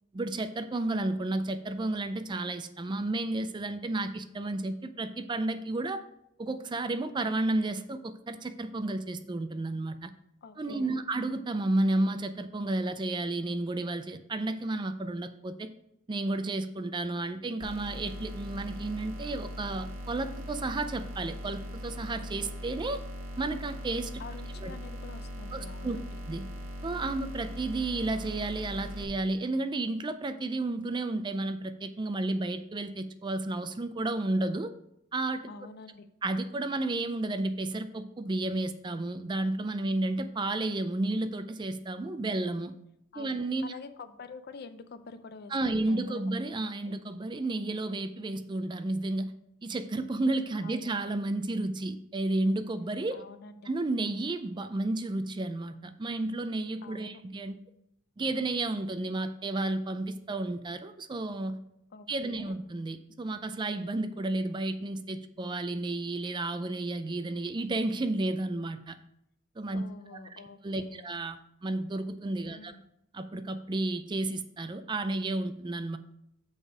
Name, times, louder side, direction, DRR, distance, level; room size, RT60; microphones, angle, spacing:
voice 1, 0.1-6.0 6.4-10.1 10.6-15.7 16.1-23.0 23.4-24.1 24.6-24.7 25.5-26.0 26.3-26.5 26.8-34.7 35.1-35.5 36.2-42.7 43.2-43.7 45.5-49.3 49.6-53.2 53.7-57.6 58.2-61.6 62.1-68.9 69.6-69.8 70.6-72.8 73.1-76.0, right 2 dB, 20° right, 10 dB, 0.4 m, -32 dB
voice 2, 10.4-11.0 24.2-26.1 35.5-36.1 43.1-46.9 50.6-51.0 53.1-53.7 56.8-57.2 61.9-62.6 69.7-71.1 72.5-72.8, left 4 dB, 50° left, 10 dB, 0.5 m, -47 dB
sound 1, 17.6-29.0, equal, 90° right, 1.5 m, -40 dB
6.4 x 5.0 x 4.9 m, 0.77 s
head